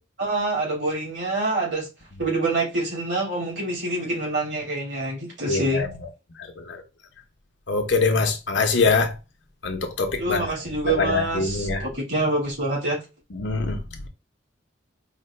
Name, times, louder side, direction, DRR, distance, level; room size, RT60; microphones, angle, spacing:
voice 1, 0.2-1.9 2.2-5.8 10.2-13.0, right 2 dB, 70° right, 2.6 m, -26 dB
voice 2, 5.5-5.9 6.6-6.8 7.7-9.1 9.6-10.4 10.8-11.8 13.3-14.1, left 4 dB, 75° left, 0.8 m, -24 dB
4.9 x 2.2 x 3.2 m
head